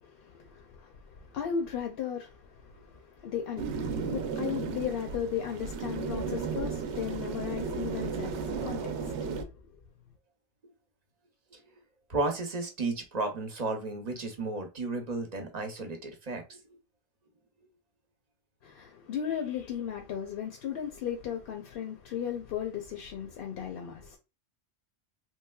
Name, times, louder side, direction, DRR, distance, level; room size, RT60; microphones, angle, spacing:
voice 1, 0.0-9.7 18.6-24.2, left 8 dB, 65° left, 0.7 m, -36 dB
sound 1, 3.6-9.4, right 5 dB, 85° right, 0.9 m, -34 dB
voice 2, 12.1-16.6, right 3 dB, 45° right, 0.7 m, -33 dB
3.2 x 3.1 x 2.2 m
omnidirectional pair, 1.1 m